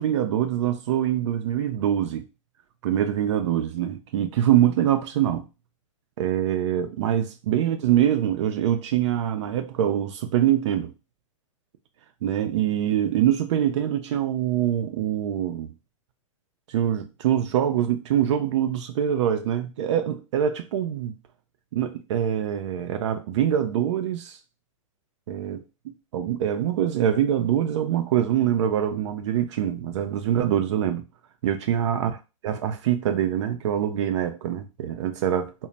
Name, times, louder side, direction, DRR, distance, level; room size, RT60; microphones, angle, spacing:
voice 1, 0.0-2.3 2.8-5.5 6.2-10.9 12.2-15.7 16.7-21.1 21.7-24.4 25.3-25.6 26.1-31.0 31.4-32.1 32.4-35.5, right 10 dB, 60° right, 0.4 m, -24 dB
2.1 x 2.1 x 3.8 m
hypercardioid pair, 130°, 17 cm